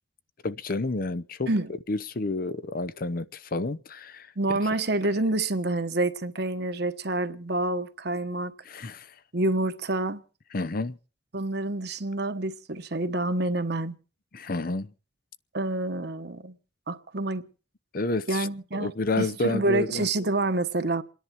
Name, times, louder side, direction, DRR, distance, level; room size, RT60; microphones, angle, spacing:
voice 1, 0.4-1.5 1.9-4.6 8.7-9.1 10.5-11.0 14.3-14.9 17.9-18.5 18.7-20.1, left 2 dB, 50° left, 0.7 m, -30 dB
voice 2, 4.4-8.5 9.3-10.2 11.3-14.0 15.5-16.5 16.9-17.4 18.3-18.9 19.2-21.0, right 2 dB, 60° right, 1.2 m, -27 dB
28.5 x 10.5 x 4.5 m
head